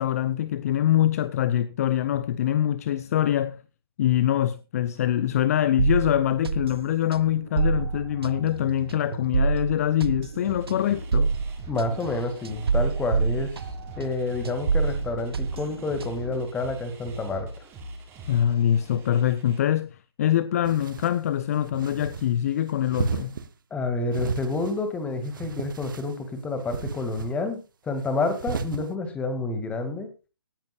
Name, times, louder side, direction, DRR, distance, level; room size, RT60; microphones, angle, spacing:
voice 1, 0.0-3.6 4.0-11.3 18.3-23.4, left 11 dB, 35° left, 0.7 m, -24 dB
sound 1, 5.8-14.2 14.4-16.4, right 5 dB, 70° right, 0.5 m, -27 dB
sound 2, 10.4-19.6, equal, 20° right, 4.0 m, -41 dB
voice 2, 11.7-13.5 14.0-17.5 23.7-27.6 27.8-30.1, left 3 dB, 10° left, 2.4 m, -29 dB
sound 3, 20.6-21.2 21.7-22.3 22.9-23.5 24.1-24.8 25.2-26.1 26.7-27.3 28.3-28.8, right 6 dB, 55° right, 1.3 m, -33 dB
17.5 x 10.5 x 2.5 m
figure-of-eight pair, 135°, 13 cm